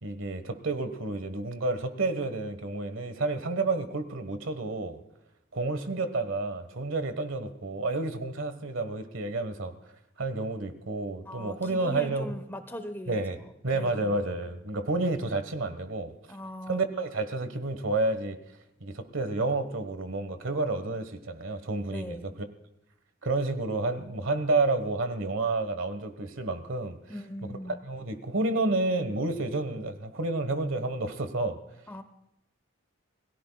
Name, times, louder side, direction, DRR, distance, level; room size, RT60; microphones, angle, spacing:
voice 1, 0.0-5.0 5.5-9.7 10.2-12.3 13.1-13.4 13.6-16.1 16.7-18.4 18.8-22.5 23.2-27.0 27.5-31.6, right 2 dB, 70° right, 10 dB, 1.4 m, -30 dB
voice 2, 11.3-14.1 16.3-16.9 21.9-22.3 27.1-27.8 31.9-32.0, left 1 dB, 10° left, 9 dB, 1.0 m, -40 dB
27.5 x 18.0 x 2.4 m, 0.82 s
head